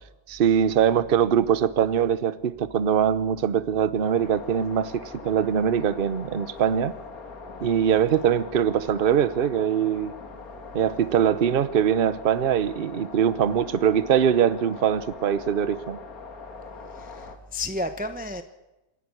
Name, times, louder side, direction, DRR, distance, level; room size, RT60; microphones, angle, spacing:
voice 1, 0.3-6.9 7.6-10.1 10.7-16.0, right 8 dB, 45° right, 15 dB, 0.7 m, -22 dB
sound 1, 4.0-17.4, left 4 dB, 55° left, 2.2 m, -42 dB
voice 2, 16.9-18.4, left 2 dB, 5° right, 8 dB, 0.7 m, -32 dB
26.5 x 11.0 x 9.8 m, 1.0 s
omnidirectional pair, 1.8 m